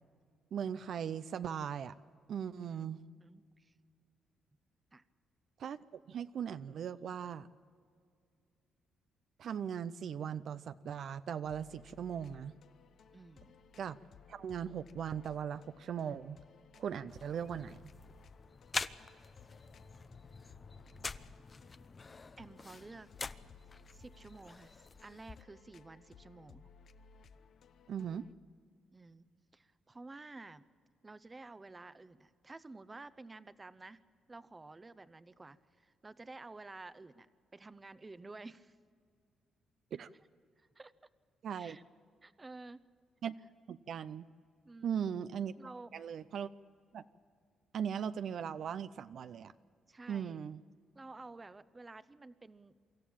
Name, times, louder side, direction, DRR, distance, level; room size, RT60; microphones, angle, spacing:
voice 1, 0.5-1.9 2.3-3.0 5.6-7.5 9.4-12.5 13.8-14.0 14.3-16.4 16.8-17.9 27.9-28.3 39.9-40.1 41.4-41.8 43.2-43.3 43.7-44.3 44.8-45.5 45.9-46.5 46.9-47.0 47.7-49.5 50.1-50.6, right 8 dB, 65° right, 12 dB, 0.5 m, -39 dB
voice 2, 2.6-3.7 4.9-5.0 13.1-13.6 22.4-23.1 23.9-26.6 28.9-29.2 29.5-30.7 31.0-34.0 34.3-37.3 37.5-38.8 40.6-40.9 41.5-41.8 42.2-42.8 44.6-45.0 45.6-45.9 49.9-50.4 50.9-52.7, right 3 dB, 25° right, 15 dB, 0.8 m, -52 dB
sound 1, 11.4-28.3, left 5 dB, 60° left, 0.8 m, -60 dB
sound 2, 17.1-25.4, left 4 dB, 30° left, 0.6 m, -46 dB
25.0 x 13.5 x 8.7 m, 2.3 s
cardioid pair, 90°, 0 cm